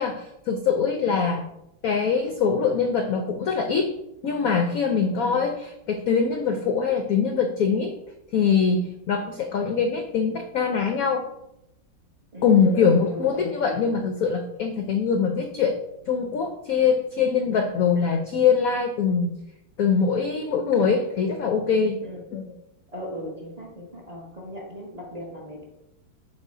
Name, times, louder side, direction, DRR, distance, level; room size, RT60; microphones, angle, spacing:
voice 1, 0.0-1.5 1.8-3.9 4.2-7.9 8.3-11.3 12.4-15.8 16.1-19.3 19.8-22.0 22.3-22.5, left 6 dB, 70° left, 5 dB, 0.8 m, -23 dB
voice 2, 12.3-12.8 13.1-13.5 22.0-22.2 22.9-25.7, equal, 20° right, -3 dB, 1.5 m, -38 dB
7.2 x 3.9 x 4.9 m, 0.85 s
omnidirectional pair, 2.2 m